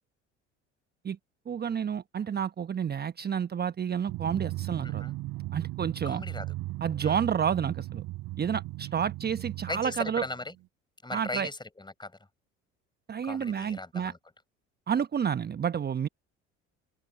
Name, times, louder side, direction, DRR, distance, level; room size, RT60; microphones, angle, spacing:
voice 1, 1.5-5.0 5.5-6.2 6.8-8.0 8.4-10.2 11.1-11.5 13.1-14.1 14.9-16.1, right 8 dB, 25° right, 1.0 m, -30 dB
Drum, 4.1-10.6, right 18 dB, 60° right, 4.0 m, -37 dB
voice 2, 4.8-5.1 6.0-6.5 7.0-7.2 9.7-10.5 11.0-12.2 13.2-14.2, left 2 dB, 10° left, 4.7 m, -38 dB
figure-of-eight pair, 55°, 36 cm